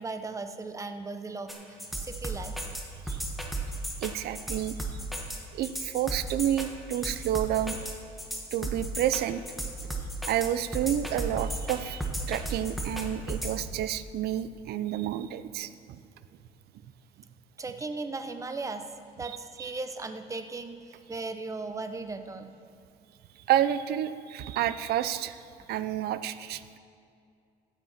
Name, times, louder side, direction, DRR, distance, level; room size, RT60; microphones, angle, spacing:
voice 1, 0.0-1.6 2.0-2.7 17.6-18.9 19.2-22.5, right 3 dB, 20° right, 8 dB, 0.8 m, -37 dB
sound 1, 1.5-13.6, right 2 dB, ahead, 1.5 m, -34 dB
voice 2, 4.0-4.8 5.5-7.8 8.5-9.4 10.3-16.0 19.6-19.7 23.5-25.4 25.7-26.6, right 11 dB, 70° right, 13 dB, 0.6 m, -29 dB
15.0 x 8.1 x 5.8 m, 2.4 s
cardioid pair, 110°, 17 cm